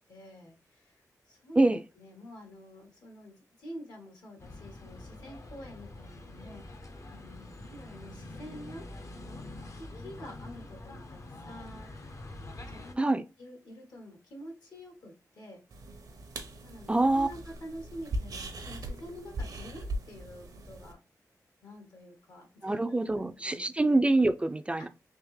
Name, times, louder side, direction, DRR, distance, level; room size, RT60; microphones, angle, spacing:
voice 1, 0.1-1.6 1.9-8.9 9.7-11.9 12.6-15.6 16.6-21.0 21.6-22.8 23.1-23.9 24.8-24.9, equal, 80° left, 1.4 m, -48 dB
sound 1, 4.4-13.0, left 2 dB, 50° left, 0.6 m, -45 dB
sound 2, 15.7-20.9, right 1 dB, 75° right, 0.7 m, -39 dB
voice 2, 16.9-17.3 22.6-24.9, right 2 dB, 20° right, 0.3 m, -25 dB
3.5 x 2.8 x 3.1 m
cardioid pair, 70°, 6 cm